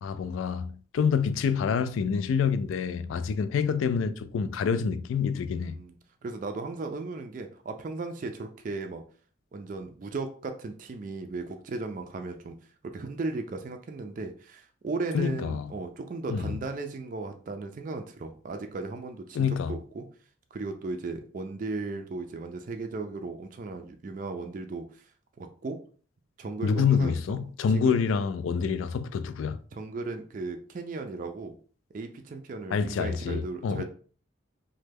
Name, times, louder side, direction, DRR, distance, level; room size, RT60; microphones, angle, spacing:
voice 1, 0.0-5.7 15.1-15.7 16.3-16.6 19.4-19.7 26.6-29.6 32.7-33.8, left 6 dB, 85° left, 0.3 m, -27 dB
voice 2, 5.5-6.0 6.2-9.0 9.5-12.6 12.8-20.1 20.5-25.1 25.4-25.8 26.4-27.4 27.7-28.0 29.7-31.6 31.9-33.8, right 3 dB, 40° right, 0.3 m, -36 dB
3.1 x 2.1 x 3.3 m
head